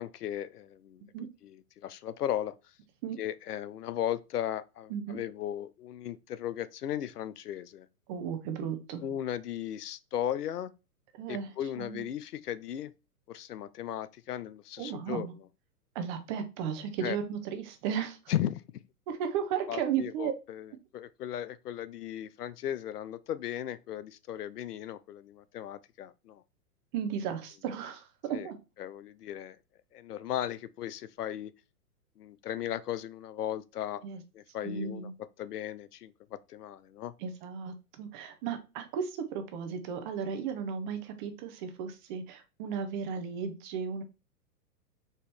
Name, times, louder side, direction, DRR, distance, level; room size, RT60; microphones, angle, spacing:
voice 1, 0.0-1.0 1.4-1.5 1.8-2.6 3.2-7.9 9.0-10.7 11.3-12.9 13.3-15.3 17.0-17.2 18.3-18.6 19.7-20.7 20.9-26.4 28.3-28.5 28.8-29.6 29.9-31.5 32.2-34.0 34.3-35.1 35.4-37.1, left 11 dB, 75° left, 0.5 m, -36 dB
voice 2, 8.1-9.0 11.1-11.5 11.8-12.0 14.8-15.3 15.9-18.2 19.1-20.3 26.9-28.6 34.0-34.2 34.6-35.1 37.2-44.0, right 7 dB, 30° right, 0.8 m, -35 dB
4.4 x 2.9 x 3.4 m
figure-of-eight pair, 115°, 47 cm